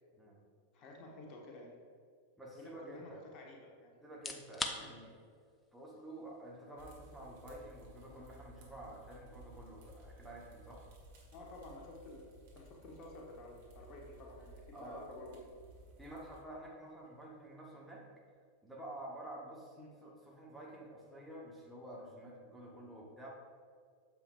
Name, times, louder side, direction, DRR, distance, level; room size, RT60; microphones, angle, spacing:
voice 1, 0.7-1.7 2.5-4.0 4.8-4.9 11.3-12.3 12.5-15.3 19.8-19.9, left 2 dB, 35° left, -1 dB, 1.3 m, -52 dB
voice 2, 2.4-3.2 4.0-5.2 5.7-10.9 14.7-15.1 16.0-18.0 18.6-23.3, right 1 dB, 5° right, -4 dB, 1.3 m, -50 dB
sound 1, 4.1-18.9, left 3 dB, 15° left, 0.6 m, -52 dB
sound 2, 6.8-16.4, right 1 dB, 50° right, 1.5 m, -57 dB
8.6 x 7.0 x 2.5 m, 2.1 s
figure-of-eight pair, 90°, 0 cm